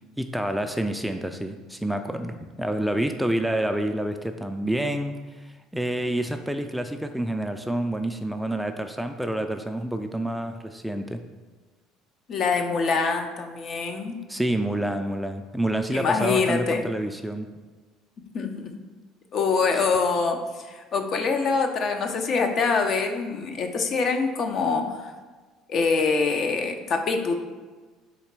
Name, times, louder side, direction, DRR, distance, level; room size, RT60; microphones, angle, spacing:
voice 1, 0.2-11.2 14.3-17.5, right 1 dB, 5° right, 6 dB, 0.3 m, -28 dB
voice 2, 12.3-14.2 15.9-16.8 18.3-18.7 19.3-20.4 20.7-25.1 25.7-27.3, left 4 dB, 50° left, 5 dB, 0.5 m, -24 dB
4.1 x 2.9 x 4.5 m, 1.3 s
hypercardioid pair, 75°, 0 cm